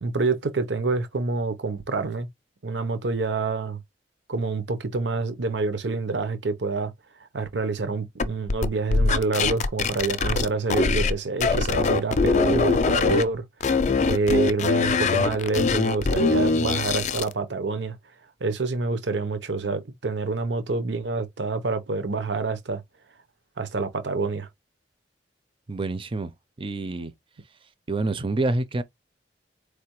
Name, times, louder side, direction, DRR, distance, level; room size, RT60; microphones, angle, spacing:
voice 1, 0.0-2.3 2.6-3.8 4.3-6.9 7.3-13.4 14.1-18.0 18.4-22.8 23.6-24.5, right 3 dB, 75° right, 0.8 m, -27 dB
sound 1, 8.2-11.1 11.4-13.2 13.6-17.3, left 4 dB, 40° left, 0.4 m, -22 dB
voice 2, 25.7-26.3 26.6-27.1 27.9-28.8, right 2 dB, 30° right, 0.5 m, -27 dB
4.4 x 3.3 x 3.0 m
head